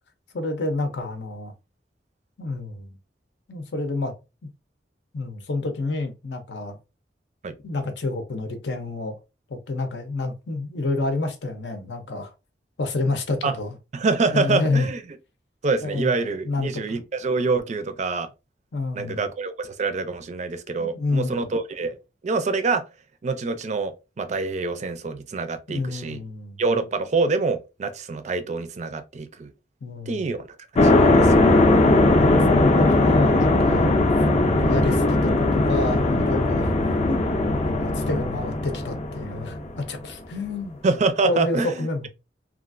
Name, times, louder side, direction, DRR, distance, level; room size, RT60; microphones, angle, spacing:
voice 1, 0.3-1.5 2.4-3.0 3.5-4.1 5.1-6.8 7.6-9.2 9.5-12.3 12.8-13.8 14.3-14.9 15.8-17.0 18.7-19.3 20.8-21.5 25.7-26.6 29.8-30.3 31.3-33.9 34.6-40.8 41.2-42.1, left 2 dB, 80° left, 0.6 m, -28 dB
voice 2, 13.9-15.0 15.6-18.3 18.9-22.0 22.2-22.8 23.2-26.2 26.6-29.5 30.1-30.4 30.8-31.5 40.8-42.1, right 3 dB, 40° right, 0.4 m, -26 dB
sound 1, 30.8-39.8, left 2 dB, 40° left, 0.4 m, -19 dB
2.9 x 2.4 x 2.5 m
head